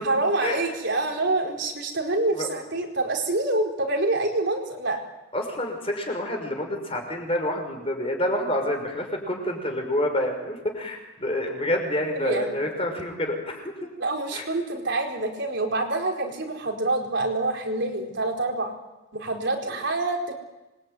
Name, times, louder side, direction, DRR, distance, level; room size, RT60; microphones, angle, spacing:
voice 1, 0.0-5.0 12.1-12.5 14.0-18.7 19.1-20.3, right 2 dB, 55° right, 2 dB, 4.6 m, -26 dB
voice 2, 5.3-13.7 14.3-14.5, left 1 dB, 25° left, 3 dB, 6.0 m, -28 dB
27.0 x 23.0 x 9.4 m, 1.1 s
head